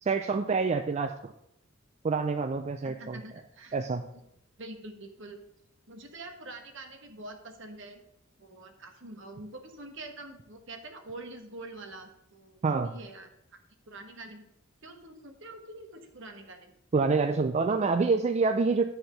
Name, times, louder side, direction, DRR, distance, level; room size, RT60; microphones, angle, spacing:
voice 1, 0.0-1.3 2.0-3.2 3.7-4.0 12.6-12.9 16.9-18.9, right 4 dB, 35° right, 7 dB, 0.4 m, -27 dB
voice 2, 2.8-3.8 4.6-5.4 5.9-8.0 8.4-13.6 13.9-14.4 14.8-16.7, right 2 dB, 65° right, 5 dB, 1.3 m, -45 dB
9.7 x 4.3 x 6.6 m, 0.78 s
head